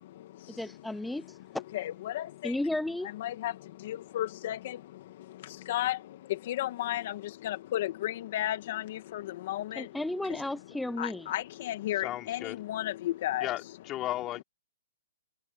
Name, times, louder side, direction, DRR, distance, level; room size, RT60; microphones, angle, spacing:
voice 1, 0.6-1.4 2.4-3.1 9.8-11.3, left 1 dB, 5° left, 0.7 m, -33 dB
voice 2, 1.7-2.5 3.2-3.5 3.8-4.8 5.7-6.0 6.5-7.2 7.4-9.2 9.5-9.8 11.0-13.5, left 13 dB, 45° left, 1.5 m, -33 dB
voice 3, 12.0-12.6 13.4-14.4, left 14 dB, 20° left, 4.9 m, -35 dB
hypercardioid pair, 150°, 0 cm